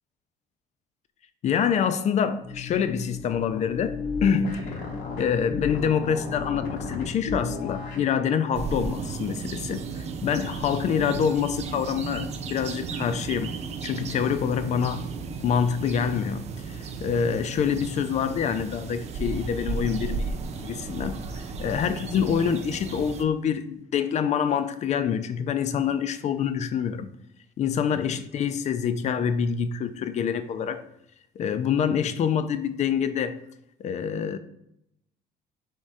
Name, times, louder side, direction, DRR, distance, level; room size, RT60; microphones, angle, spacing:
voice 1, 1.4-4.7 5.2-9.8 10.2-13.5 13.8-15.0 15.4-21.2 21.6-27.1 27.6-30.8 31.4-33.4 33.8-34.4, left 7 dB, 45° left, 0.4 m, -26 dB
sound 1, 2.4-8.1, left 3 dB, 75° left, 1.0 m, -33 dB
sound 2, 8.5-23.3, right 4 dB, 40° right, 0.4 m, -34 dB
3.6 x 3.1 x 4.0 m
cardioid pair, 110°, 17 cm